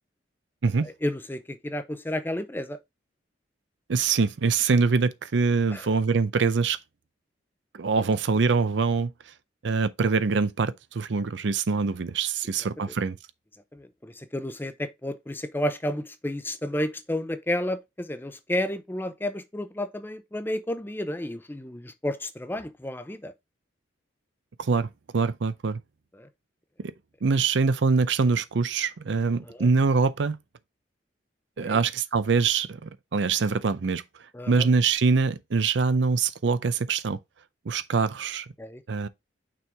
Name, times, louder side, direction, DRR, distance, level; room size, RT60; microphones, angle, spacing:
voice 1, 0.8-2.8 5.7-5.8 13.7-23.3 26.2-26.3 29.5-29.7 31.6-31.8 34.3-34.7 38.6-38.8, left 1 dB, 10° left, 0.6 m, -31 dB
voice 2, 3.9-6.8 7.7-9.1 9.6-13.2 24.6-25.8 26.8-26.9 27.2-30.4 31.6-34.0 34.5-37.2 37.7-38.5 38.9-39.1, right 4 dB, 75° right, 0.5 m, -24 dB
6.1 x 4.6 x 3.4 m
head